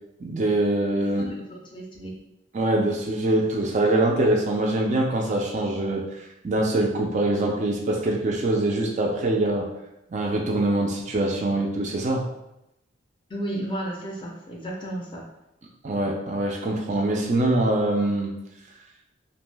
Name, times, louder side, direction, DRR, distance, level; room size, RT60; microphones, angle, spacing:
voice 1, 0.2-1.2 2.5-6.0 6.4-9.7 10.1-12.2 15.8-18.3, right 2 dB, 35° right, 0 dB, 0.3 m, -23 dB
voice 2, 1.0-2.2 13.3-15.2, right 1 dB, 25° left, -2 dB, 0.5 m, -33 dB
2.5 x 2.1 x 3.2 m, 0.87 s
head